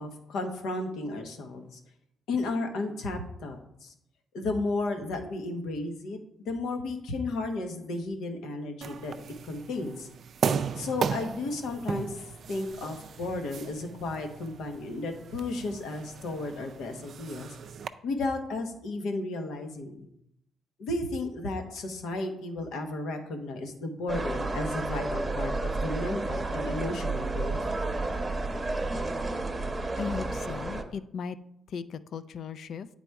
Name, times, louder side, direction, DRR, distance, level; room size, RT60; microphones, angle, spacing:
voice 1, 0.0-1.8 2.3-3.9 4.3-9.1 9.5-10.1 10.8-12.2 12.5-17.5 18.0-20.1 20.8-27.6, left 2 dB, 80° left, 5 dB, 1.0 m, -33 dB
sound 1, 8.8-17.9, right 6 dB, 60° right, 0.4 m, -36 dB
sound 2, 24.1-30.8, right 2 dB, 15° right, 0.9 m, -31 dB
voice 2, 30.0-31.4 31.7-32.9, left 6 dB, 65° left, 15 dB, 0.4 m, -37 dB
8.8 x 4.0 x 4.6 m, 0.77 s
cardioid pair, 90°, 0 cm